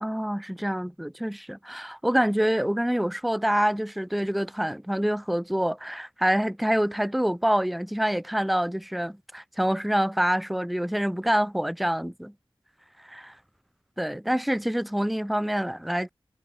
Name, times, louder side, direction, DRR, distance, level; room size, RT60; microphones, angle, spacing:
voice 1, 0.0-12.3 13.0-13.4 14.0-16.1, equal, ahead, 0.3 m, -26 dB
wide cardioid pair, 80°, 9 cm